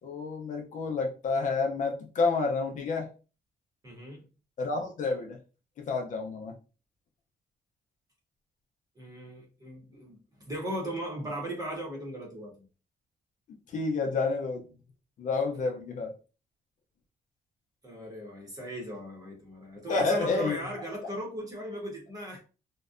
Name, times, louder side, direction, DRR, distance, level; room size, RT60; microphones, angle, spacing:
voice 1, 0.0-3.1 4.6-5.4 5.8-6.6 13.7-14.6 15.2-16.1 19.9-20.6, left 4 dB, 50° left, 0.5 m, -29 dB
voice 2, 3.8-4.2 9.0-12.7 17.8-22.4, equal, 20° right, 0.9 m, -38 dB
2.5 x 2.2 x 2.4 m
cardioid pair, 170°, 16 cm